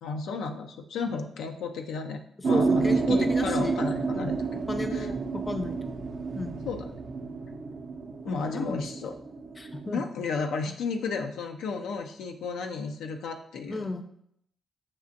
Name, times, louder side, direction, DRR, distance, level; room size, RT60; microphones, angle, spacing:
voice 1, 0.0-4.5 4.9-5.1 6.7-7.0 8.2-9.1 9.9-13.9, left 4 dB, 90° left, 4 dB, 0.3 m, -33 dB
sound 1, 2.4-9.9, right 4 dB, 60° right, 0.5 m, -29 dB
voice 2, 2.5-3.8 4.1-4.3 4.7-6.1 6.3-6.6 8.3-8.8 9.6-10.0 13.7-14.0, left 2 dB, 30° left, 7 dB, 0.5 m, -34 dB
7.2 x 2.5 x 2.6 m, 0.70 s
cardioid pair, 75°, 0 cm